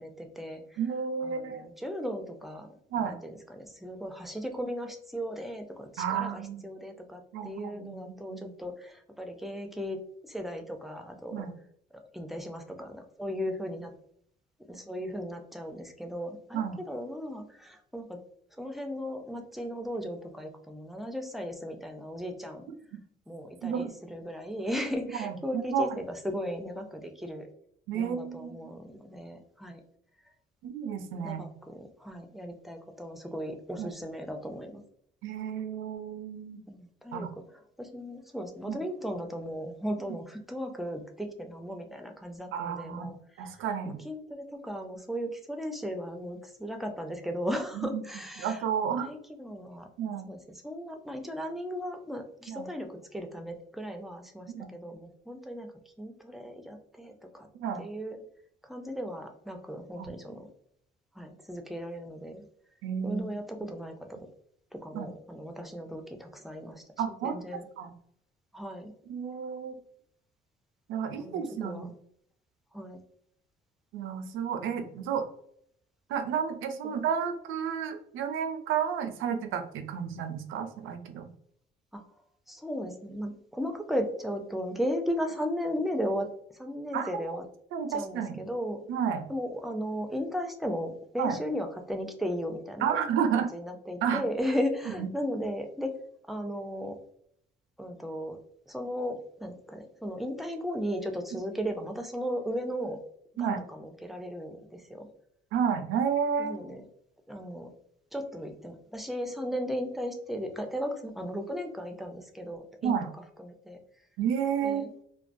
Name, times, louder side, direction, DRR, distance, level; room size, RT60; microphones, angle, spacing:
voice 1, 0.0-0.8 1.2-10.0 10.2-11.5 11.9-13.9 14.7-18.2 18.6-22.7 23.3-27.5 27.9-29.8 31.2-34.8 36.7-37.3 37.8-43.2 43.9-48.6 49.0-49.9 50.3-55.7 56.0-57.5 57.8-58.2 58.6-60.5 61.2-62.5 63.0-64.3 64.7-66.8 67.2-67.6 68.5-68.9 71.2-71.9 72.7-73.0 81.9-82.0 82.5-86.3 86.5-87.4 87.9-88.8 89.3-92.9 93.4-95.9 96.3-97.0 97.8-98.4 98.7-103.0 103.4-105.1 106.4-106.8 107.3-107.7 108.1-113.0 113.4-113.8 114.6-114.9, equal, ahead, 4 dB, 0.4 m, -36 dB
voice 2, 0.8-1.7 2.9-3.2 6.0-6.6 7.3-8.5 11.3-11.5 16.5-16.8 23.6-23.9 25.2-26.0 27.9-28.7 30.6-31.4 33.8-33.9 35.2-36.6 37.1-37.3 38.7-38.8 42.5-44.0 47.7-48.0 48.4-49.1 50.0-50.3 52.5-52.7 54.5-54.7 57.5-57.8 60.0-60.1 62.8-63.2 64.9-65.1 67.0-67.4 67.8-67.9 69.1-69.8 70.9-71.9 73.9-75.3 76.1-81.2 86.9-87.4 87.7-88.4 88.9-89.2 91.2-91.3 92.8-93.5 94.0-94.2 95.0-95.1 103.4-103.6 105.5-106.6 112.8-113.1 114.2-114.8, right 7 dB, 85° right, 7 dB, 0.4 m, -31 dB
2.2 x 2.2 x 2.5 m, 0.67 s
cardioid pair, 90°, 20 cm